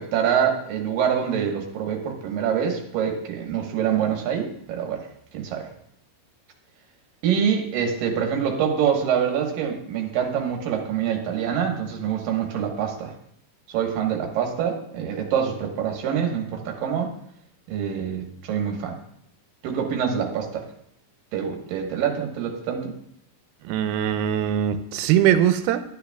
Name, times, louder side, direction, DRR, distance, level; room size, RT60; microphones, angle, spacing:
voice 1, 0.0-5.1 5.3-5.7 7.2-13.1 13.7-17.2 17.7-19.0 19.6-20.6 21.3-22.9, right 8 dB, 70° right, 2 dB, 2.8 m, -25 dB
voice 2, 23.6-25.8, right 10 dB, 90° right, 10 dB, 2.6 m, -21 dB
12.5 x 9.7 x 2.3 m, 0.71 s
omnidirectional pair, 4.4 m